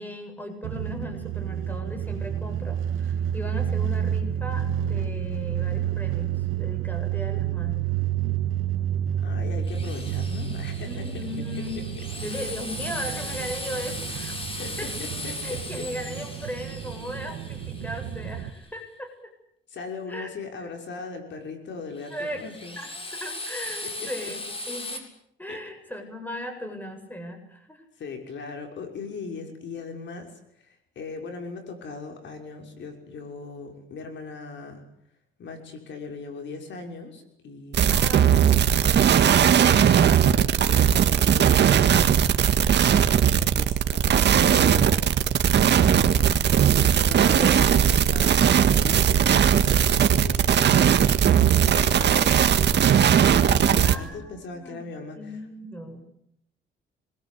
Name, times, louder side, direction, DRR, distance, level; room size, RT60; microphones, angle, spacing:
voice 1, 0.0-7.9 10.8-11.8 12.2-14.9 15.4-19.3 20.1-20.3 20.6-20.7 22.1-22.5 22.8-24.4 24.7-25.0 25.4-27.8 37.9-38.8 45.8-46.8 47.4-47.6 53.8-54.9 55.2-56.0, equal, 10° left, 5 dB, 7.8 m, -37 dB
sound 1, 0.6-18.5, right 9 dB, 85° right, 1.8 m, -30 dB
voice 2, 9.2-11.0 14.6-15.8 19.7-22.8 23.8-23.9 24.2-24.3 25.5-25.6 28.0-34.8 35.4-38.0 38.9-40.1 40.3-42.4 43.1-50.9 51.2-55.3, left 4 dB, 65° left, 4 dB, 6.0 m, -39 dB
Drill, 9.6-18.6 22.0-25.0, left 2 dB, 30° left, 7.2 m, -38 dB
sound 2, 37.7-53.9, right 9 dB, 60° right, 1.9 m, -19 dB
26.5 x 22.5 x 8.5 m, 0.76 s
cardioid pair, 90°, 20 cm